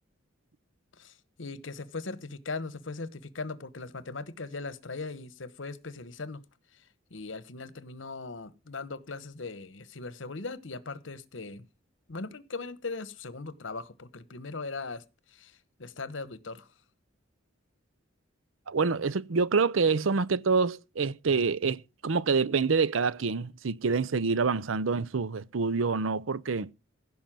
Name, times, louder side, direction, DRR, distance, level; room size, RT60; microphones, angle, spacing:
voice 1, 1.0-6.4 7.1-11.6 12.1-15.0 15.3-16.7, left 3 dB, 70° left, 1.2 m, -39 dB
voice 2, 18.7-26.7, right 4 dB, 85° right, 0.6 m, -27 dB
16.0 x 5.5 x 7.5 m
head